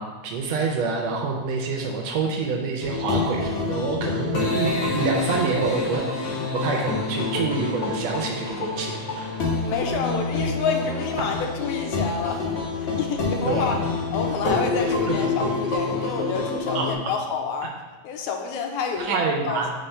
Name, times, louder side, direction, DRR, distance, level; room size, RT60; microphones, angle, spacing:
voice 1, 0.0-6.0 6.5-8.9 13.5-13.9 15.1-15.2 16.8-16.9 19.0-19.7, right 4 dB, 75° right, 0 dB, 1.7 m, -26 dB
sound 1, 2.8-16.9, left 3 dB, 65° left, 1.3 m, -27 dB
voice 2, 9.6-13.8 14.1-17.7 18.0-19.6, left 5 dB, 85° left, 3 dB, 2.0 m, -29 dB
4.4 x 4.2 x 5.4 m, 1.3 s
omnidirectional pair, 3.3 m